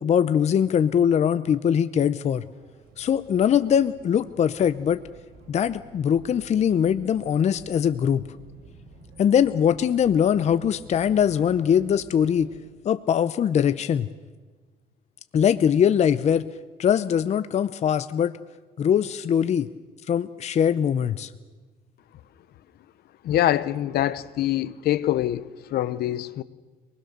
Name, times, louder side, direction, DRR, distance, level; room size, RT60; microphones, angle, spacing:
voice 1, 0.0-2.4 3.0-5.0 5.5-8.3 9.2-12.5 12.8-14.1 15.3-16.5 16.8-18.3 18.8-19.7 20.1-21.3, left 8 dB, 40° left, 0.7 m, -22 dB
sound 1, 2.1-12.6, right 3 dB, 65° right, 5.8 m, -50 dB
voice 2, 23.2-26.4, left 13 dB, 70° left, 1.0 m, -24 dB
25.5 x 20.0 x 6.7 m
cardioid pair, 110°, 17 cm